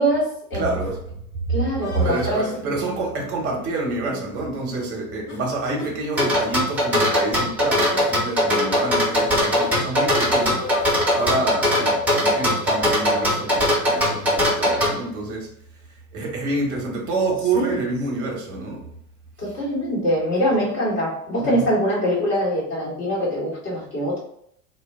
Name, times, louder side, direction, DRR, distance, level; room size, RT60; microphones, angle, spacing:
voice 1, 0.0-0.8 1.5-2.8 17.5-17.8 19.4-24.2, equal, 25° left, -5 dB, 1.4 m, -23 dB
voice 2, 0.5-1.6 2.0-15.5 16.1-18.9 19.4-19.5 21.4-21.6, right 3 dB, 30° right, -1 dB, 1.0 m, -27 dB
sound 1, 0.8-1.0 1.8-2.6 3.6-3.9 4.2-4.3 4.7-4.9 5.3-5.4 5.8-5.9 6.2-6.3 7.0-7.2 7.7-7.9 8.8-8.9 9.6-9.7 10.1-11.3, left 3 dB, 70° left, 0.8 m, -35 dB
sound 2, 6.2-14.9, equal, 5° right, 1.0 m, -20 dB
2.3 x 2.2 x 3.5 m, 0.70 s
figure-of-eight pair, 90°, 45 cm